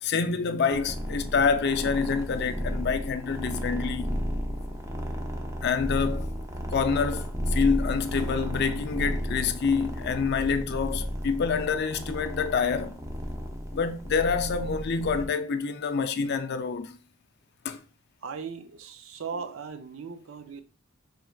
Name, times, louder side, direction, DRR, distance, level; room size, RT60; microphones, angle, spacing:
voice 1, 0.0-4.2 5.6-6.3 6.7-13.0 13.7-17.0 17.6-17.8, left 5 dB, 50° left, 0.4 m, -27 dB
sound 1, 0.7-15.3, equal, 15° right, 0.5 m, -33 dB
voice 2, 18.2-20.6, right 5 dB, 70° right, 0.5 m, -38 dB
4.4 x 3.2 x 2.3 m
head